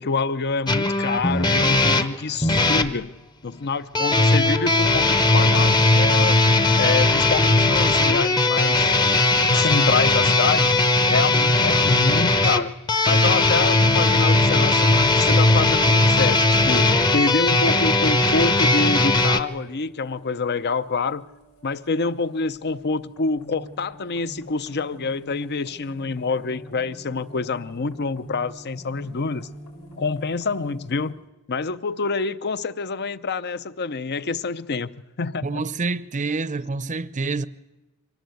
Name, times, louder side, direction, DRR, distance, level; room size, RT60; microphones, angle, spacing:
voice 1, 0.0-3.1 3.4-6.5 6.8-8.9 9.5-10.7 11.1-12.7 13.0-21.2 21.6-29.5 30.0-31.1 31.5-34.9 35.2-35.6, left 4 dB, 50° left, 0.7 m, -26 dB
sound 1, 0.7-2.9 3.9-19.4, left 2 dB, 20° left, 0.9 m, -18 dB
sound 2, 16.0-31.1, right 1 dB, 90° left, 6.9 m, -47 dB
voice 2, 35.4-37.5, right 3 dB, 35° right, 0.7 m, -27 dB
24.0 x 18.5 x 7.9 m
head